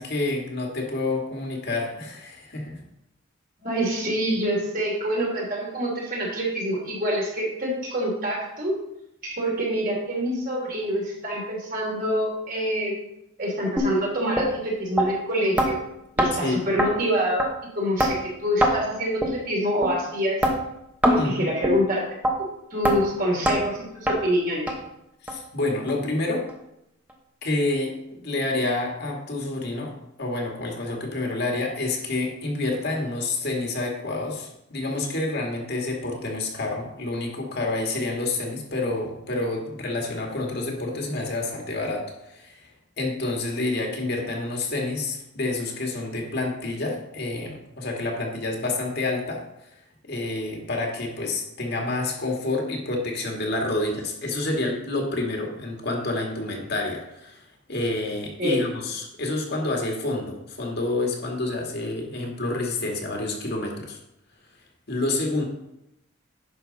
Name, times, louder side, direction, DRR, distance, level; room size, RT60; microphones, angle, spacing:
voice 1, 0.0-2.8 16.4-16.6 21.1-21.5 25.2-26.5 27.4-29.9 30.2-42.7 43.0-49.4 50.1-64.0 64.9-65.4, left 2 dB, 55° left, 0 dB, 1.8 m, -28 dB
voice 2, 3.6-8.8 9.2-13.0 13.4-15.8 16.2-20.4 21.1-22.0 22.7-24.7 58.4-58.7, equal, 45° right, -2 dB, 3.1 m, -26 dB
sound 1, 13.8-13.9 14.4-14.5 15.0-15.1 15.6-15.7 16.2-16.3 16.8-16.9 17.4-17.5 18.0-18.1 18.6-18.7 19.2-19.3 19.8-19.9 20.4-20.6 21.0-21.2 21.6-21.8 22.2-22.3 22.8-23.0 23.5-23.6 24.1-24.2 24.7-24.8 25.3-25.4 25.9-26.0 26.5-26.6, equal, 10° right, 1.1 m, -21 dB
10.5 x 6.4 x 4.0 m, 0.84 s
head